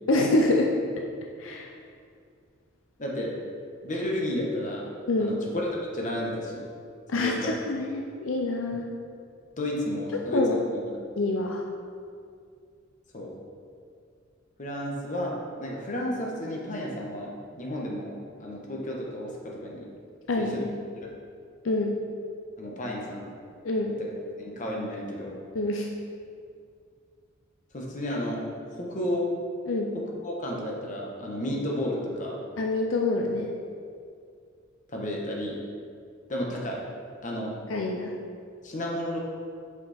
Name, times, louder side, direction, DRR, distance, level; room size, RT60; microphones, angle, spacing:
voice 1, 0.1-0.7 1.4-1.7 5.1-5.4 7.1-8.9 10.3-10.5 11.2-11.6 20.3-20.7 21.6-22.0 23.6-24.0 25.5-25.9 29.7-29.9 32.6-33.5 37.7-38.1, left 2 dB, 70° left, 1 dB, 0.6 m, -26 dB
voice 2, 3.0-3.3 3.8-4.9 5.2-6.6 7.1-7.5 9.5-11.0 13.1-13.3 14.6-19.9 20.3-20.6 21.0-21.1 22.6-23.3 24.0-24.1 24.4-25.4 27.7-29.3 29.9-32.4 34.9-35.6 36.3-36.8 37.2-37.5 38.6-39.2, left 1 dB, 40° left, -2 dB, 1.1 m, -32 dB
7.0 x 5.4 x 4.3 m, 2.3 s
head